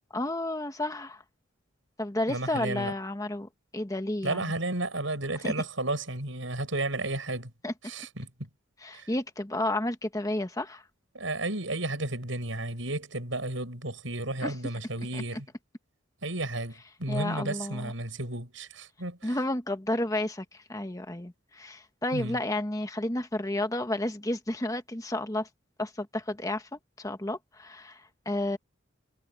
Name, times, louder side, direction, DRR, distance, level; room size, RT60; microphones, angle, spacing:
voice 1, 0.1-1.2 2.0-4.5 5.4-5.5 7.6-7.7 8.8-10.8 14.4-14.5 15.1-15.4 17.1-17.9 19.2-25.5 25.8-28.6, left 1 dB, 15° left, 1.4 m, -32 dB
voice 2, 2.3-2.9 4.2-7.5 7.8-8.3 8.9-9.1 11.1-15.5 16.2-19.3 22.1-22.4, right 2 dB, 80° right, 6.2 m, -33 dB
head